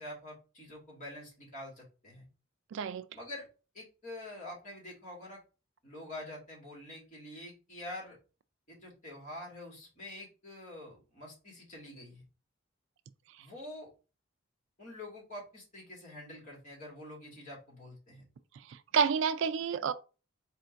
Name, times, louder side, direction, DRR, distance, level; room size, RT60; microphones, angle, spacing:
voice 1, 0.0-2.3 3.1-3.5 3.7-5.4 5.8-8.2 8.7-12.2 13.4-13.9 14.8-18.2, left 1 dB, 35° left, 2.3 m, -46 dB
voice 2, 2.7-3.0 18.7-19.9, right 6 dB, 60° right, 0.3 m, -29 dB
4.3 x 2.6 x 4.5 m
head